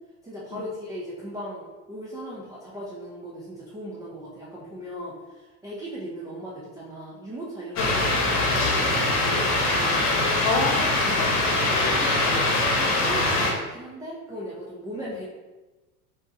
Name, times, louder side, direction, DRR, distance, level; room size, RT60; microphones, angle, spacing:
voice 1, 0.2-10.0 11.5-15.3, equal, 10° right, -7 dB, 0.3 m, -38 dB
sound 1, 7.8-13.5, left 2 dB, 75° left, 0.9 m, -23 dB
voice 2, 7.8-8.1 10.4-11.9 15.0-15.1, left 3 dB, 35° left, 1 dB, 0.8 m, -30 dB
3.5 x 2.8 x 2.6 m, 1.1 s
hypercardioid pair, 80°, 46 cm